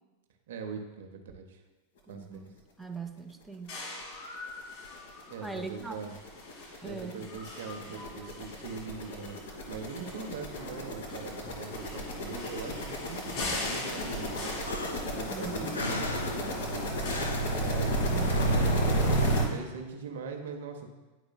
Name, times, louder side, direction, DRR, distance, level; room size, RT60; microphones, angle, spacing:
voice 1, 0.5-1.6 2.1-2.5 5.3-6.1 6.8-9.4 9.7-14.8 15.1-18.0 18.5-20.9, right 5 dB, 60° right, 4 dB, 0.8 m, -41 dB
voice 2, 2.1-3.7 5.4-6.1 6.8-7.3 10.0-10.1 15.3-15.8 18.1-18.3, right 4 dB, 5° right, 5 dB, 0.5 m, -41 dB
sound 1, 3.7-18.1, left 2 dB, 45° left, 1.7 m, -43 dB
sound 2, 4.0-4.1 4.5-4.6 4.8-19.4, right 1 dB, 60° left, 1.2 m, -32 dB
sound 3, 14.6-19.7, left 1 dB, 80° left, 0.5 m, -39 dB
9.8 x 4.7 x 2.2 m, 1.2 s
figure-of-eight pair, 90°, 0 cm